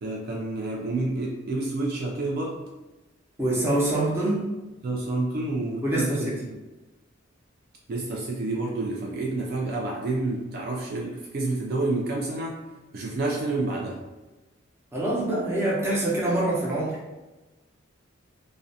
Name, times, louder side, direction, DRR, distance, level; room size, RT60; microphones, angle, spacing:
voice 1, 0.0-2.6 4.8-6.6 7.9-12.6 12.9-14.0, right 2 dB, 50° right, -1 dB, 0.3 m, -29 dB
voice 2, 3.4-4.5 5.8-6.4 14.9-17.0, right 1 dB, 15° right, -6 dB, 0.6 m, -25 dB
2.4 x 2.1 x 2.6 m, 1.1 s
head